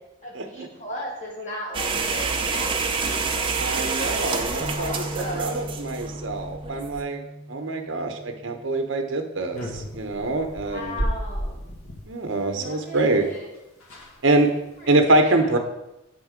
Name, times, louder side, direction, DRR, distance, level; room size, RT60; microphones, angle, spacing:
voice 1, 0.2-5.7 10.6-11.6 12.4-13.5 14.4-15.6, equal, 35° left, -4 dB, 2.2 m, -37 dB
sound 1, 1.7-7.0, right 4 dB, 25° right, 0.5 m, -28 dB
voice 2, 3.6-7.2 7.5-10.9 12.1-13.3 14.2-14.5 14.9-15.6, right 2 dB, 60° right, 5 dB, 0.8 m, -24 dB
Bass guitar, 4.6-10.9, equal, ahead, 1.2 m, -40 dB
sound 2, 9.5-12.1 13.3-13.4 13.5-13.6 13.8-14.2 14.6-14.9, equal, 85° left, 1.5 m, -32 dB
8.2 x 3.8 x 5.0 m, 0.91 s
head